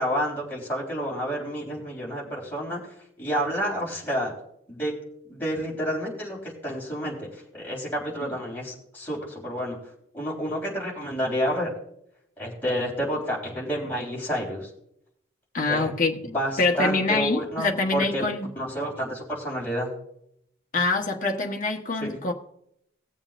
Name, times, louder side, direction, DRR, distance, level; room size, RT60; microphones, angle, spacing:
voice 1, 0.0-4.3 4.7-4.9 5.2-9.8 10.1-11.7 12.4-14.7 15.7-15.9 16.2-18.3 18.6-19.9 22.0-22.1, equal, 10° left, 3.8 m, -29 dB
voice 2, 15.5-16.2 16.6-18.5 20.7-22.3, left 3 dB, 40° left, 1.2 m, -25 dB
19.5 x 7.1 x 2.5 m
head